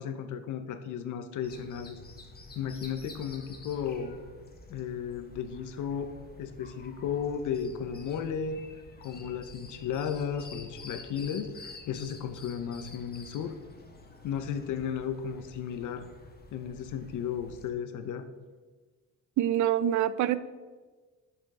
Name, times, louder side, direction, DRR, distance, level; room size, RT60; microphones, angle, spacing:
voice 1, 0.0-2.0 2.5-4.2 4.7-6.1 6.4-8.6 9.0-13.5 14.2-16.1 16.5-18.3, left 7 dB, 80° left, 9 dB, 0.8 m, -34 dB
sound 1, 1.4-17.7, left 2 dB, 30° left, 1.5 m, -49 dB
voice 2, 19.4-20.4, right 11 dB, 75° right, 16 dB, 0.5 m, -25 dB
6.9 x 6.1 x 4.8 m, 1.4 s
cardioid pair, 90°, 30 cm